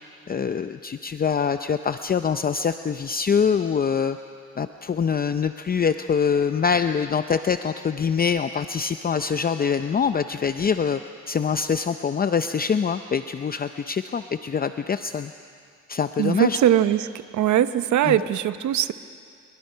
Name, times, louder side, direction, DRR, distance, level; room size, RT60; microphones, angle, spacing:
voice 1, 0.3-4.2 4.6-11.0 11.3-15.3 15.9-16.6 18.0-18.2, left 6 dB, 30° left, 9 dB, 0.6 m, -24 dB
voice 2, 16.2-18.9, right 11 dB, 70° right, 13 dB, 0.9 m, -21 dB
27.0 x 22.5 x 5.7 m, 2.3 s
cardioid pair, 90°, 30 cm